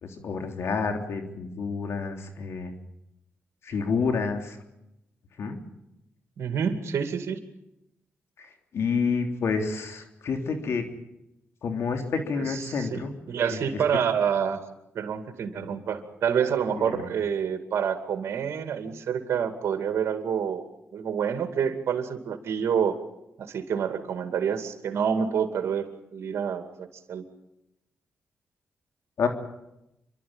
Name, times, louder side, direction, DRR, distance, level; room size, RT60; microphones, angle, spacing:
voice 1, 0.0-2.7 3.6-4.6 5.4-5.6 8.4-8.5 8.7-10.9 11.6-13.1 13.5-13.6 15.6-15.7 16.8-17.0 29.2-29.3, left 5 dB, 75° left, 4 dB, 3.4 m, -29 dB
voice 2, 6.4-7.4 12.1-14.6 14.9-20.6 20.9-23.0 23.4-25.9 26.1-27.2, right 7 dB, 75° right, 7 dB, 2.5 m, -28 dB
28.0 x 12.5 x 8.9 m, 0.87 s
cardioid pair, 70°, 5 cm